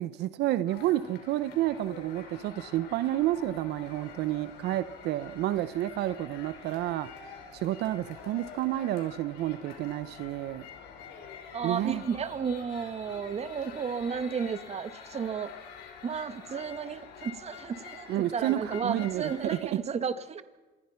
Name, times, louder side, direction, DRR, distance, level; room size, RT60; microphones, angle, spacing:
voice 1, 0.0-10.6 11.6-12.0 18.1-19.8, right 14 dB, 80° right, 14 dB, 0.8 m, -30 dB
sound 1, 0.7-19.6, left 6 dB, 90° left, 5.3 m, -47 dB
voice 2, 11.5-15.5 16.0-20.4, right 6 dB, 40° right, 11 dB, 1.7 m, -33 dB
26.0 x 20.5 x 5.8 m, 1.2 s
cardioid pair, 110°, 17 cm